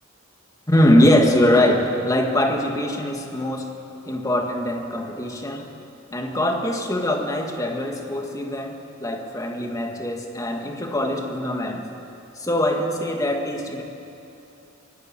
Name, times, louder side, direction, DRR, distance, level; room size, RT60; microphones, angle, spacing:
voice 1, 0.7-3.7 4.0-5.7 6.1-11.9 12.4-13.8, left 1 dB, 15° left, 3 dB, 1.7 m, -22 dB
23.5 x 13.0 x 8.9 m, 2.7 s
head